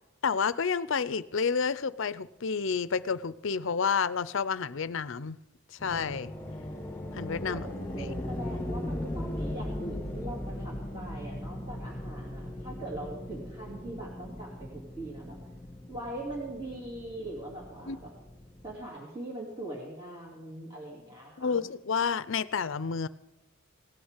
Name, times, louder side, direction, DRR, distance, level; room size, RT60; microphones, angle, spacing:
voice 1, 0.2-5.4 5.7-6.3 7.1-7.7 17.9-18.0 21.4-23.1, left 5 dB, 60° left, 0.6 m, -30 dB
sound 1, 5.8-18.8, left 1 dB, 10° left, 2.4 m, -38 dB
voice 2, 7.5-15.4 15.9-18.1 18.6-21.6, right 1 dB, 20° right, 2.7 m, -41 dB
18.0 x 6.6 x 8.1 m
head